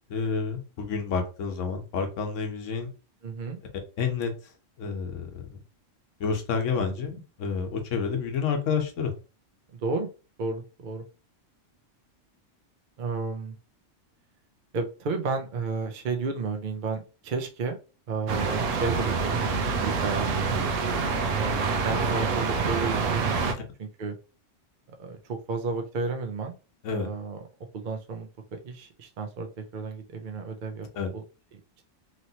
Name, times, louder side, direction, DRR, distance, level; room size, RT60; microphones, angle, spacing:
voice 1, 0.1-2.9 4.0-4.3 4.8-5.6 6.2-9.1 23.4-23.6 26.8-27.1 31.0-31.1, left 5 dB, 80° left, 4 dB, 1.1 m, -29 dB
voice 2, 3.2-3.6 9.7-10.1 10.4-11.0 13.0-13.5 14.7-17.8 18.1-20.6 21.4-24.2 25.0-26.6 26.9-27.5 27.7-30.9 31.1-31.2, right 4 dB, 55° right, 5 dB, 0.6 m, -32 dB
sound 1, 18.3-23.5, right 5 dB, 85° right, 1.0 m, -26 dB
3.0 x 2.9 x 2.7 m, 0.32 s
omnidirectional pair, 1.3 m